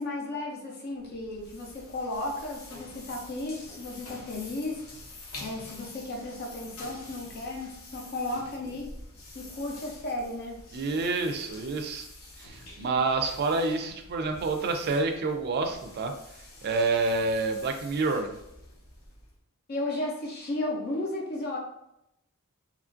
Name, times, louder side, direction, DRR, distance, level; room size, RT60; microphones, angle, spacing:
voice 1, 0.0-4.8 5.4-8.9 9.3-10.6 19.7-21.6, left 2 dB, 45° left, -1 dB, 0.5 m, -34 dB
sound 1, 0.9-19.4, left 2 dB, 80° left, 0.8 m, -48 dB
voice 2, 10.7-12.0 12.4-16.1 16.6-18.3, right 3 dB, 50° right, 5 dB, 0.4 m, -28 dB
2.9 x 2.4 x 2.5 m, 0.82 s
head